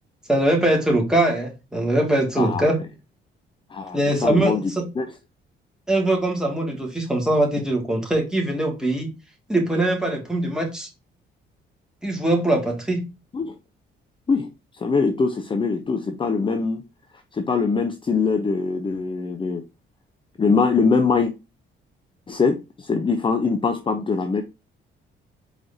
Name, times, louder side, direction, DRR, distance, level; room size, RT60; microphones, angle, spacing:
voice 1, 0.3-2.8 3.9-4.8 5.9-9.1 9.5-10.9 12.0-13.0, right 1 dB, 5° right, 1.9 m, -22 dB
voice 2, 3.7-5.1 13.3-13.5 14.3-14.5 14.7-16.8 17.3-19.6 20.4-21.3 22.3-24.4, left 4 dB, 25° left, 0.5 m, -22 dB
4.5 x 4.0 x 2.6 m
cardioid pair, 90°, 20 cm